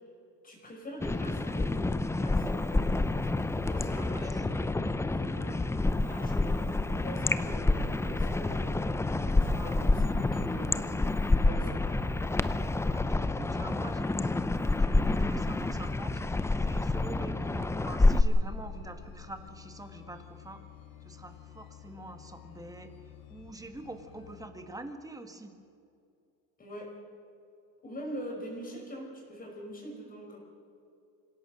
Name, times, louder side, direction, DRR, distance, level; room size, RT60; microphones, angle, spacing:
voice 1, 0.4-3.1 3.7-8.7 9.1-10.8 11.2-12.1 26.6-27.0 27.8-30.4, equal, 25° left, 0 dB, 5.4 m, -43 dB
sound 1, 1.0-18.2, left 2 dB, 5° left, 0.6 m, -28 dB
voice 2, 3.9-4.4 9.4-9.8 12.7-20.6 21.0-22.9 23.3-25.5, right 2 dB, 10° right, 7 dB, 1.8 m, -45 dB
sound 2, 14.7-24.5, left 11 dB, 70° left, 3.0 m, -52 dB
26.5 x 17.0 x 6.6 m, 2.6 s
cardioid pair, 130°, 36 cm